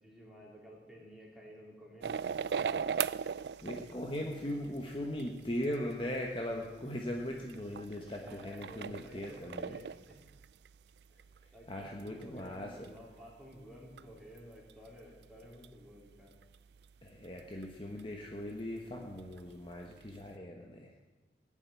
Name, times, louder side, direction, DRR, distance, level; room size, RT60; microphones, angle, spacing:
voice 1, 0.0-2.3 3.9-4.5 8.2-10.2 11.5-16.4, equal, ahead, -4 dB, 3.9 m, -53 dB
sound 1, 2.0-20.4, right 7 dB, 70° right, 0.4 m, -42 dB
voice 2, 3.6-9.8 11.7-12.9 17.0-20.9, left 1 dB, 30° left, 0 dB, 1.3 m, -39 dB
18.5 x 7.4 x 9.6 m, 1.2 s
head